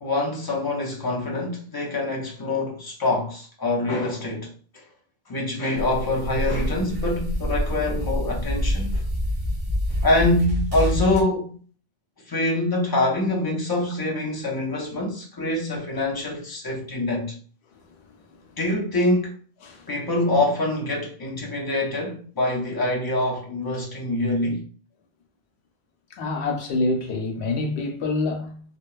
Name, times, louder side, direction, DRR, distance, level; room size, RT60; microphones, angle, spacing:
voice 1, 0.0-4.9 5.3-9.0 10.0-11.5 12.3-17.4 18.6-19.3 19.9-24.7, left 2 dB, 35° left, 0.3 m, -25 dB
sound 1, 5.8-11.2, left 1 dB, 60° right, 1.1 m, -26 dB
voice 2, 26.1-28.6, left 2 dB, 75° left, 0.9 m, -26 dB
2.9 x 2.1 x 2.2 m
omnidirectional pair, 1.1 m